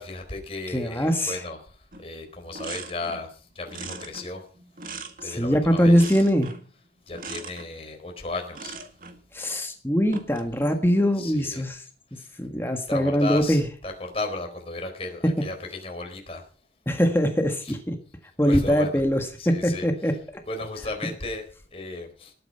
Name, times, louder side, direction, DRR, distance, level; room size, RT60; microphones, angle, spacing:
voice 1, 0.0-4.5 5.2-6.3 7.1-8.8 11.1-11.6 12.1-12.4 12.9-16.5 17.6-17.8 18.4-18.9 19.4-20.2 20.5-22.3, left 2 dB, 35° left, 3 dB, 4.3 m, -35 dB
voice 2, 0.7-1.4 5.2-6.5 9.3-11.8 12.4-13.6 16.9-18.0 18.4-20.1, equal, 15° left, 5 dB, 1.7 m, -22 dB
sound 1, 1.9-2.1 2.3-3.3 3.7-5.5 5.9-6.7 7.1-7.7 8.5-9.2 10.0-10.5, right 4 dB, 50° right, 1.9 m, -40 dB
19.0 x 9.2 x 5.6 m, 0.39 s
head